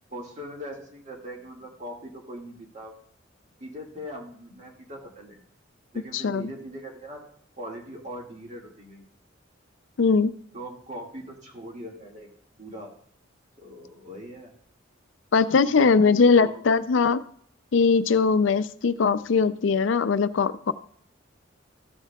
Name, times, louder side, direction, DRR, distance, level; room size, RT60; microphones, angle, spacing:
voice 1, 0.1-2.9 3.6-5.4 5.9-7.2 7.6-9.0 10.5-12.3 12.6-12.9 13.6-14.5 15.6-16.6, equal, 40° right, 0 dB, 2.1 m, -40 dB
voice 2, 6.1-6.5 10.0-10.3 15.3-17.2 17.7-20.7, left 5 dB, 80° left, 13 dB, 0.5 m, -20 dB
14.0 x 8.1 x 2.3 m, 0.62 s
head